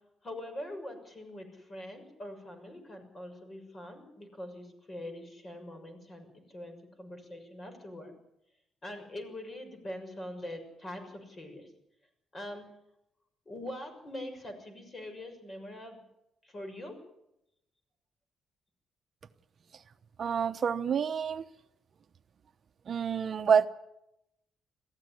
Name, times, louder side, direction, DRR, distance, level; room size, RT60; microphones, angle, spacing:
voice 1, 0.2-8.1 8.8-11.7 12.3-12.7 13.4-16.0 16.4-17.0, left 1 dB, 30° left, 6 dB, 6.6 m, -43 dB
voice 2, 20.2-21.4 22.9-23.7, right 7 dB, 50° right, 9 dB, 0.9 m, -27 dB
22.0 x 15.5 x 9.9 m, 0.85 s
cardioid pair, 90°, 0 cm